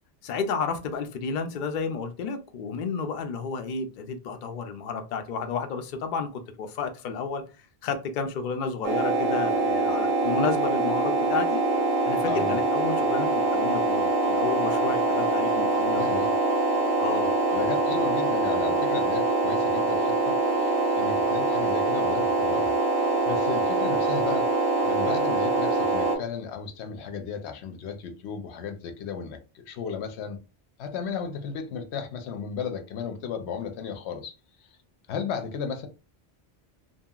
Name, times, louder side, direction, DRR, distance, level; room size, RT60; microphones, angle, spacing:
voice 1, 0.2-6.3 6.6-7.4 7.8-11.6 12.0-16.3 17.0-17.3, left 5 dB, 60° left, 0.6 m, -31 dB
sound 1, 8.8-26.2, right 2 dB, 65° right, 1.1 m, -24 dB
voice 2, 12.3-12.6 15.9-16.3 17.5-22.7 23.3-24.5 24.8-30.4 30.8-34.4 35.1-35.9, left 6 dB, 85° left, 0.9 m, -34 dB
2.8 x 2.8 x 2.3 m
omnidirectional pair, 1.1 m